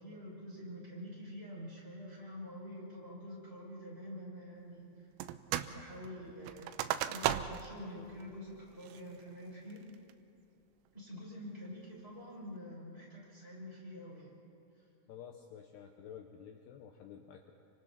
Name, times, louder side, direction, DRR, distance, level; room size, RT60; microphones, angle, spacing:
voice 1, 0.0-5.0 5.7-6.8 7.0-9.8 10.9-14.3, equal, 10° right, -5 dB, 5.6 m, -47 dB
sound 1, 5.2-5.8 6.0-7.8 8.2-8.3 8.8-9.2 9.7-10.1, right 12 dB, 85° right, 3.3 m, -36 dB
voice 2, 15.1-17.5, left 8 dB, 85° left, 4 dB, 2.3 m, -51 dB
29.5 x 25.0 x 4.2 m, 2.7 s
omnidirectional pair, 6.0 m